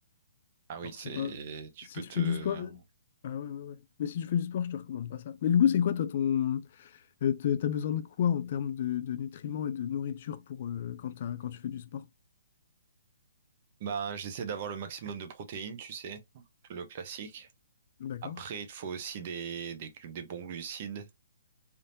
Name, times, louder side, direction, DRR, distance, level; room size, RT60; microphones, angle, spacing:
voice 1, 0.7-2.7 13.8-16.4 16.7-17.5 18.2-21.1, right 7 dB, 30° right, 0.6 m, -39 dB
voice 2, 1.9-2.8 3.2-12.0 18.0-18.4, left 9 dB, 40° left, 0.3 m, -31 dB
3.4 x 2.7 x 2.6 m
hypercardioid pair, 170°, 0 cm